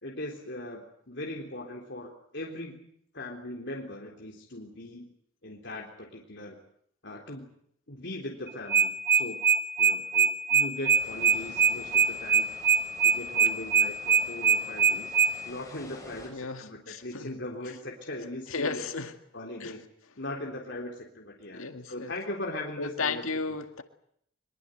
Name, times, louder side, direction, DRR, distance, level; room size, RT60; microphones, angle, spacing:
voice 1, 0.0-2.9 3.1-5.1 5.4-6.6 7.0-7.5 7.9-9.4 9.8-12.5 13.0-15.1 15.4-18.8 19.3-19.8 20.2-23.2, left 1 dB, 55° left, 0 dB, 3.8 m, -39 dB
sound 1, 8.5-15.3, right 6 dB, 10° right, 1.2 m, -22 dB
sound 2, 11.0-16.3, left 1 dB, 15° left, 6.7 m, -49 dB
voice 2, 16.3-17.4 18.5-19.1 19.6-19.8 21.5-22.1 22.8-23.8, left 4 dB, 80° left, 7 dB, 2.0 m, -34 dB
23.5 x 23.0 x 8.0 m, 0.69 s
head